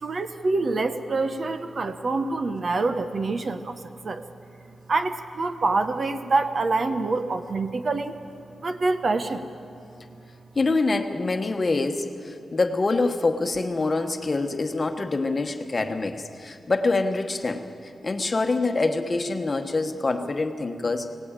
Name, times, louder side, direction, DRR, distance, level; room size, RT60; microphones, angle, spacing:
voice 1, 0.0-4.2 4.9-8.1 8.6-9.5 10.1-10.2, right 3 dB, 45° right, 9 dB, 1.0 m, -26 dB
voice 2, 10.5-17.6 18.0-21.1, left 3 dB, 30° left, 6 dB, 1.2 m, -25 dB
24.0 x 18.0 x 9.0 m, 2.6 s
wide cardioid pair, 150°, 0 cm